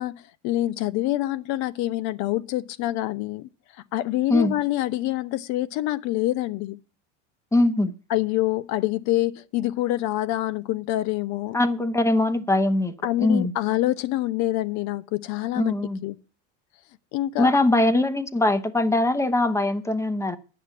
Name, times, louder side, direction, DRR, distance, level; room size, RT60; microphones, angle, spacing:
voice 1, 0.0-3.5 3.9-6.8 8.1-11.6 13.0-15.7 16.0-16.2 17.1-17.6, left 15 dB, 55° left, 0.9 m, -26 dB
voice 2, 7.5-7.9 11.5-13.5 15.6-16.0 17.4-20.4, left 2 dB, 10° left, 0.9 m, -22 dB
9.8 x 6.6 x 8.3 m
supercardioid pair, 105°, 33 cm